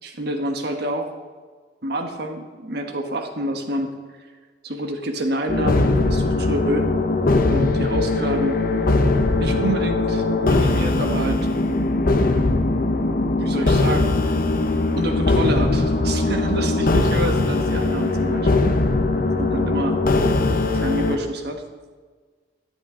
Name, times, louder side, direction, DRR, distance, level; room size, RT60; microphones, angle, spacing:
voice 1, 0.0-1.1 1.8-3.9 4.6-6.9 7.5-8.6 9.4-11.5 13.4-14.4 15.0-18.7 19.4-20.0 20.7-21.6, right 1 dB, 60° right, 4 dB, 1.3 m, -27 dB
sound 1, 5.5-21.2, left 2 dB, 50° left, 0.8 m, -20 dB
12.5 x 10.5 x 3.8 m, 1.5 s
head